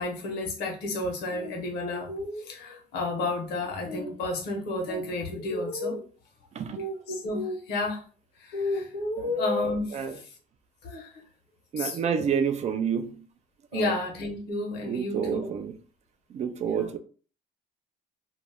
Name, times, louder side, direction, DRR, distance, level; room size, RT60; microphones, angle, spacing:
voice 1, 0.0-6.0 6.8-8.0 8.4-10.0 10.8-11.2 11.8-12.3 13.7-15.5 16.6-16.9, left 2 dB, 75° left, 0.9 m, -31 dB
voice 2, 11.7-13.2 13.7-14.0 14.9-15.8 16.3-17.0, right 7 dB, 40° right, 0.4 m, -29 dB
2.5 x 2.1 x 3.3 m
cardioid pair, 110°, 17 cm